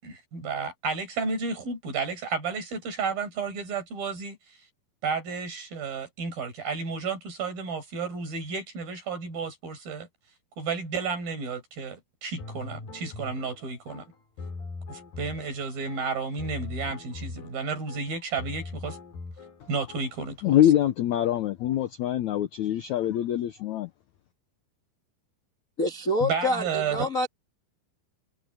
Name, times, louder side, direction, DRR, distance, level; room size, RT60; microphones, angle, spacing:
voice 1, 0.0-4.4 5.0-10.1 10.6-14.1 14.9-19.0 19.7-20.6 26.2-27.1, right 5 dB, 60° right, 8.4 m, -32 dB
sound 1, 12.4-20.3, left 3 dB, 60° left, 6.7 m, -41 dB
voice 2, 20.4-23.9, left 12 dB, 80° left, 1.6 m, -24 dB
voice 3, 25.8-27.3, left 1 dB, 30° left, 1.6 m, -27 dB
omnidirectional pair, 4.6 m